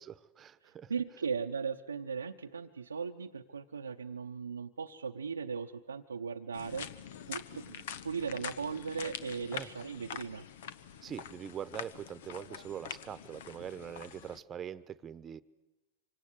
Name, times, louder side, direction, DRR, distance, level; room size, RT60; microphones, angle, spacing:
voice 1, 0.0-0.9 9.5-9.7 11.0-15.4, right 9 dB, 25° right, 16 dB, 1.2 m, -43 dB
voice 2, 0.6-6.9 7.3-10.5, right 6 dB, 85° right, 2 dB, 0.8 m, -38 dB
sound 1, 6.5-14.4, left 8 dB, 65° left, 1.1 m, -45 dB
26.0 x 25.5 x 8.1 m, 1.1 s
figure-of-eight pair, 95°, 0 cm